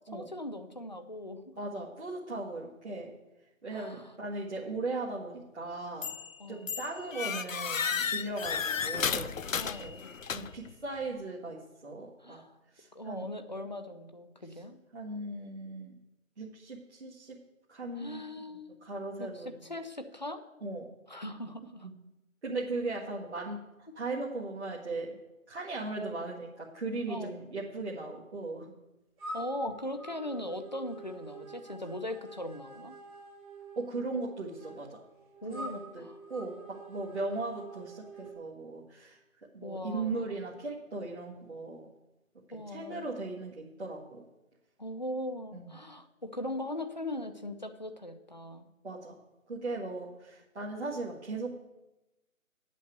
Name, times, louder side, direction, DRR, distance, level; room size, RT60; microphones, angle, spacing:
voice 1, 0.1-1.4 3.7-4.1 6.4-6.7 9.6-10.1 12.2-12.5 12.9-14.8 18.0-18.7 19.2-20.4 21.1-21.9 26.0-26.2 27.1-27.3 29.3-32.9 35.4-36.2 39.6-40.4 42.5-43.1 44.8-48.7, left 1 dB, 35° left, 8 dB, 0.7 m, -39 dB
voice 2, 1.6-3.1 3.6-6.2 6.5-9.3 9.7-9.9 10.3-12.4 12.7-13.3 14.9-15.9 16.4-17.4 17.7-18.2 18.8-19.5 20.6-20.9 21.8-21.9 22.4-23.6 24.0-25.1 25.5-28.7 33.8-35.0 35.5-39.2 39.5-41.9 42.5-44.3 45.5-45.7 48.8-49.2 49.5-51.7, right 3 dB, 50° right, -5 dB, 1.7 m, -38 dB
sound 1, 6.0-6.3 6.7-10.7, left 6 dB, 70° left, 0.6 m, -33 dB
sound 2, 29.2-38.3, right 2 dB, 5° right, 1.4 m, -47 dB
8.5 x 6.4 x 8.1 m, 0.98 s
figure-of-eight pair, 170°, 41 cm